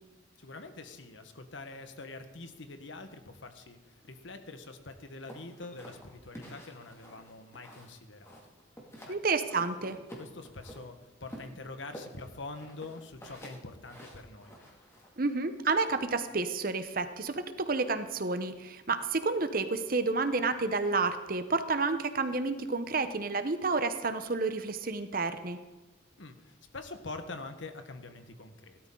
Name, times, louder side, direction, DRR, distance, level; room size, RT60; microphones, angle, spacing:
voice 1, 0.4-8.4 9.0-9.2 10.2-14.6 26.2-28.8, left 3 dB, 75° left, 8 dB, 1.3 m, -45 dB
sound 1, 5.3-8.0 8.2-9.2 9.5-10.8 11.3-15.1, equal, 15° left, 2.4 m, -49 dB
voice 2, 9.1-10.0 15.2-25.6, right 3 dB, 45° right, 10 dB, 0.9 m, -30 dB
17.0 x 12.5 x 3.8 m, 1.2 s
head